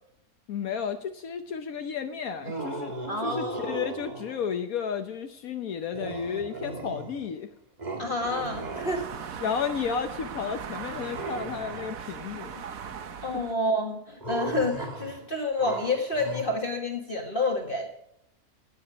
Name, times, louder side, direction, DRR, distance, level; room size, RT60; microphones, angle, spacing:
voice 1, 0.5-2.9 3.2-7.5 9.4-12.6, left 7 dB, 70° left, 7 dB, 1.3 m, -32 dB
sound 1, 2.4-4.5 5.9-7.4 7.8-9.5 10.9-12.0 14.2-16.4, right 2 dB, 30° right, 1.8 m, -37 dB
voice 2, 3.1-3.8 8.0-9.3 13.2-17.9, left 2 dB, 35° left, 1 dB, 1.9 m, -29 dB
sound 2, 8.2-13.5, right 7 dB, 65° right, 1.4 m, -39 dB
17.0 x 7.8 x 5.0 m, 0.78 s
omnidirectional pair, 1.6 m